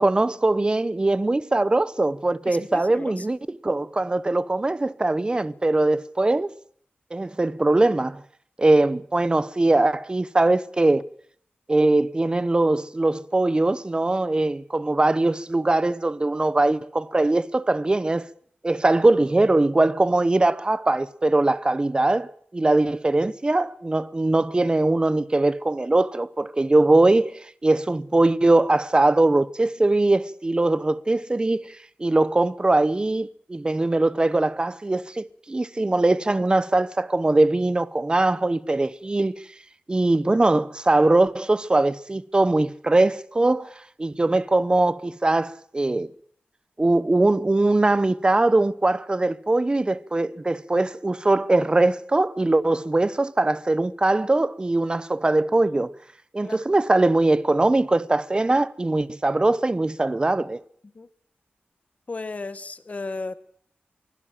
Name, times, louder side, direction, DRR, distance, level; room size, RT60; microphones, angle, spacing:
voice 1, 0.0-3.4 3.6-6.5 7.1-8.2 8.6-11.0 11.7-18.3 18.6-31.7 32.0-39.3 39.9-43.7 44.0-46.1 46.8-55.9 56.3-60.6, right 2 dB, 25° right, 0.9 m, -21 dB
voice 2, 2.5-3.3 56.4-56.6 60.9-61.1 62.1-63.3, left 3 dB, 40° left, 1.7 m, -34 dB
24.0 x 16.0 x 7.5 m
wide cardioid pair, 105°, 4 cm